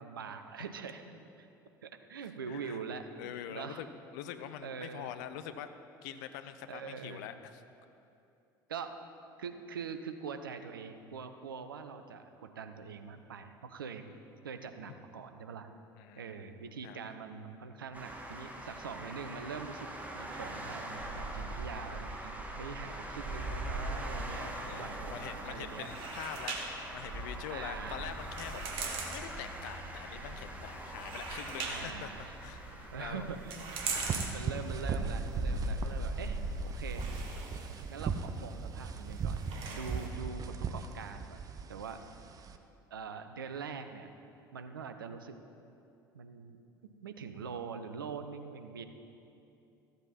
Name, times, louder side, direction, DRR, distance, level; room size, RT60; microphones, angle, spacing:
voice 1, 0.0-1.5 1.8-3.9 4.6-5.1 6.7-7.3 8.7-8.9 9.4-14.0 14.4-15.7 16.1-19.9 20.1-25.9 27.5-28.1 31.7-32.3 32.9-33.6 33.8-36.4 36.7-37.1 37.9-39.4 39.7-41.4 41.7-42.0 42.9-44.1 44.5-45.4 46.1-46.6 47.0-48.8, right 5 dB, 75° right, 8 dB, 0.6 m, -43 dB
voice 2, 2.5-2.8 3.2-3.9 4.1-5.7 6.0-7.6 14.9-15.0 16.0-16.5 16.8-17.0 24.7-32.1 32.4-33.3, left 10 dB, 60° left, 10 dB, 0.6 m, -44 dB
sound 1, 17.9-37.3, right 1 dB, 15° right, 1.5 m, -41 dB
sound 2, 25.1-40.1, right 4 dB, 50° right, 1.4 m, -43 dB
sound 3, 33.8-42.6, right 5 dB, 30° right, 0.6 m, -39 dB
14.0 x 8.0 x 4.2 m, 2.7 s
figure-of-eight pair, 65°, 12 cm